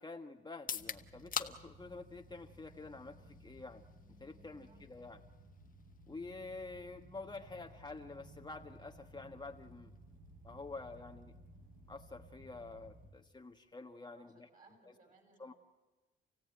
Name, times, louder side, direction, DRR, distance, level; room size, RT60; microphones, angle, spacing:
voice 1, 0.0-3.8 4.2-5.2 6.1-9.9 10.4-11.3 11.9-14.5 15.4-15.5, left 3 dB, 20° left, 4 dB, 1.3 m, -48 dB
sound 1, 0.5-14.4, left 7 dB, 45° left, 1.4 m, -50 dB
sound 2, 0.8-13.1, right 1 dB, 55° right, 7.9 m, -58 dB
voice 2, 14.2-15.6, right 3 dB, 40° right, 4 dB, 7.7 m, -65 dB
28.5 x 16.5 x 9.2 m, 1.2 s
cardioid pair, 90°, 20 cm